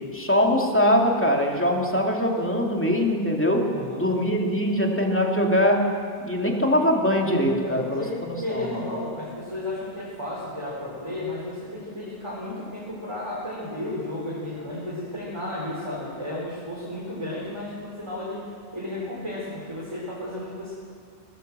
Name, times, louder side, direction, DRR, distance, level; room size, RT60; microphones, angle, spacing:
voice 1, 0.1-5.9 6.2-8.7, equal, 10° left, 0 dB, 2.6 m, -22 dB
voice 2, 3.7-4.2 6.4-6.6 7.6-18.4 18.7-20.7, left 1 dB, 25° right, -6 dB, 4.8 m, -33 dB
21.5 x 19.5 x 7.7 m, 2.1 s
omnidirectional pair, 1.1 m